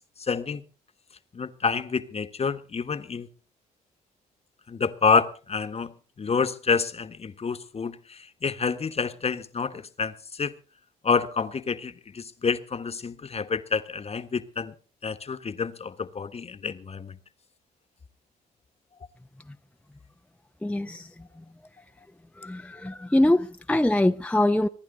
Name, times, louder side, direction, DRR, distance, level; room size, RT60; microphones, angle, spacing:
voice 1, 0.2-0.6 1.3-3.3 4.7-10.5 11.0-14.7 15.0-17.2, left 5 dB, 40° left, 1.4 m, -28 dB
voice 2, 20.6-21.1 22.4-24.7, left 1 dB, 5° left, 0.8 m, -23 dB
25.5 x 11.0 x 3.9 m
supercardioid pair, 55°, 17 cm